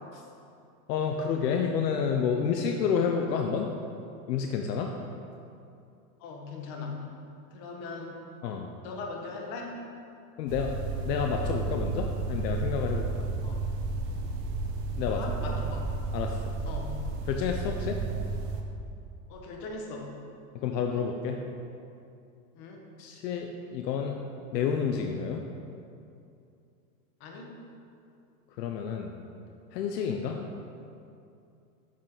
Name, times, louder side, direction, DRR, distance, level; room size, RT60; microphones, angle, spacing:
voice 1, 0.9-3.7 4.3-4.9 8.4-8.7 10.4-10.7 11.0-13.1 15.0-15.2 16.1-16.4 17.3-18.0 20.5-21.4 23.0-24.2 24.5-25.4 28.6-29.2 29.7-30.4, left 6 dB, 85° left, 3 dB, 0.8 m, -29 dB
voice 2, 6.2-6.9 7.5-8.2 8.8-9.8 13.4-13.6 15.1-15.8 16.7-17.0 19.3-20.1 22.5-22.8 27.2-27.6, left 3 dB, 50° left, 0 dB, 1.6 m, -39 dB
sound 1, 10.5-18.6, right 3 dB, 80° right, 1.1 m, -32 dB
7.5 x 7.5 x 3.9 m, 2.6 s
supercardioid pair, 135°, 49 cm